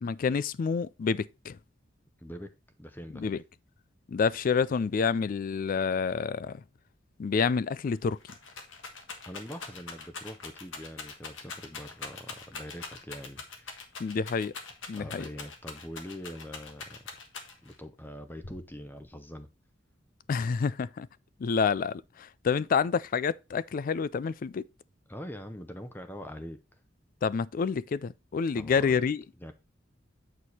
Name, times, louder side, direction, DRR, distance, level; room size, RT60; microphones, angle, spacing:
voice 1, 0.0-1.6 3.1-3.4 4.1-6.6 7.2-8.2 14.0-14.5 14.9-15.2 20.3-21.1 21.4-24.6 27.2-29.2, left 5 dB, 45° left, 0.3 m, -28 dB
voice 2, 2.2-2.5 2.8-3.3 9.3-13.8 14.9-17.0 17.6-19.5 25.1-26.6 28.5-29.1 29.4-29.5, equal, 10° left, 0.7 m, -43 dB
Rattle, 7.9-17.8 18.4-19.0, left 4 dB, 90° left, 1.5 m, -43 dB
8.2 x 4.6 x 4.2 m
head